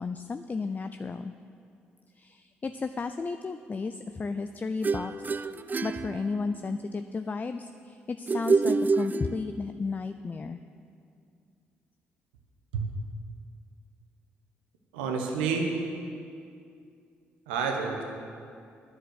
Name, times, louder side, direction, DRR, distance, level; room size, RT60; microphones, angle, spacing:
voice 1, 0.0-1.3 2.1-5.3 5.8-10.6, left 4 dB, 30° left, 9 dB, 0.5 m, -33 dB
sound 1, 4.8-6.8 8.3-9.8, right 4 dB, 35° right, 0.4 m, -27 dB
voice 2, 14.9-15.7 17.5-18.0, right 5 dB, 85° right, 2 dB, 1.2 m, -29 dB
10.0 x 7.3 x 8.2 m, 2.4 s
hypercardioid pair, 45°, 5 cm